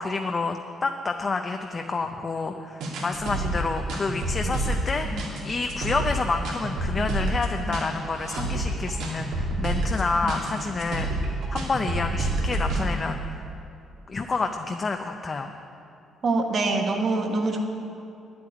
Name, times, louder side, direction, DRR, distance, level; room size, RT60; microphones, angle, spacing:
voice 1, 0.0-13.4 14.1-15.5, left 4 dB, 25° left, 5 dB, 0.6 m, -29 dB
sound 1, 2.8-12.9, right 1 dB, 80° right, 2.8 m, -28 dB
voice 2, 16.2-17.6, right 3 dB, 40° right, 3 dB, 1.5 m, -24 dB
11.0 x 8.6 x 10.0 m, 2.7 s
cardioid pair, 145°, 0 cm